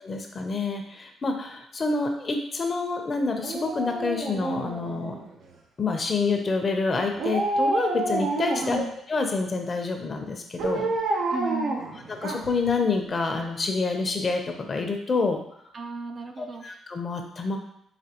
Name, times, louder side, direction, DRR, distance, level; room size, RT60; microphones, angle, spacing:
voice 1, 0.0-5.2 5.8-10.9 12.2-15.4 16.4-17.6, left 4 dB, 35° left, 4 dB, 0.7 m, -27 dB
Dog, 3.4-5.5 7.2-8.9 10.6-12.7 13.0-13.1, right 2 dB, 75° right, 0.8 m, -28 dB
voice 2, 8.5-8.9 10.7-10.9 11.3-11.9 15.7-16.7, right 3 dB, 40° right, 4 dB, 0.5 m, -34 dB
5.1 x 2.9 x 2.9 m, 0.74 s
cardioid pair, 90°, 0 cm